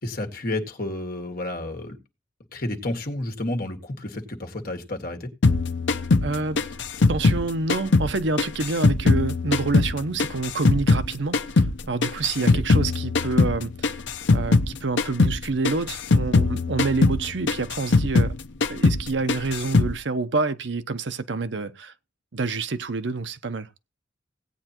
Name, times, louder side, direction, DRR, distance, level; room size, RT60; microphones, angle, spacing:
voice 1, 0.0-2.0 2.5-5.3 12.4-12.6, left 1 dB, 55° left, 1.9 m, -31 dB
sound 1, 5.4-8.1 8.4-11.1 11.3-14.7 15.0-15.4 15.6-18.4 18.6-19.0 19.3-19.9, left 3 dB, 70° left, 0.7 m, -21 dB
voice 2, 6.2-6.6 7.1-13.9 14.3-18.4 18.7-21.9 22.3-23.7, right 3 dB, 70° right, 0.8 m, -27 dB
17.0 x 8.9 x 3.0 m
head